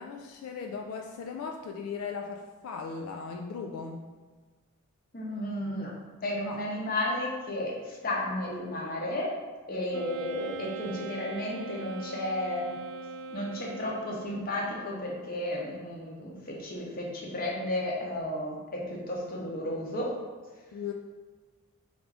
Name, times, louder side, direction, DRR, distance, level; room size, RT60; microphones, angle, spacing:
voice 1, 0.0-4.1 6.4-6.6 20.7-20.9, left 5 dB, 80° left, 3 dB, 0.3 m, -38 dB
voice 2, 5.1-5.9 6.2-9.3 9.7-12.8 13.3-20.1, left 1 dB, 40° left, -2 dB, 0.8 m, -33 dB
Wind instrument woodwind instrument, 9.9-14.6, right 3 dB, 70° right, 0.3 m, -41 dB
3.6 x 2.5 x 4.6 m, 1.4 s
head